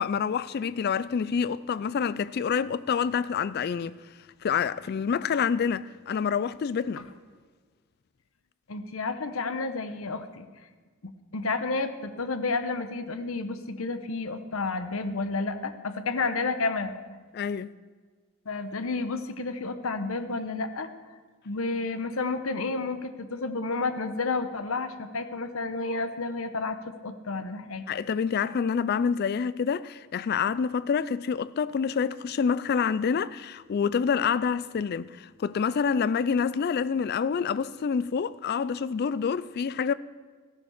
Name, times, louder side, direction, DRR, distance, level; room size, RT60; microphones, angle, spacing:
voice 1, 0.0-4.0 4.4-7.0 17.3-17.7 27.9-39.9, left 6 dB, 50° left, 0.3 m, -27 dB
voice 2, 8.7-10.5 11.0-16.9 18.5-20.9 21.4-27.9, left 3 dB, 80° left, 0.9 m, -31 dB
14.5 x 10.5 x 6.4 m
head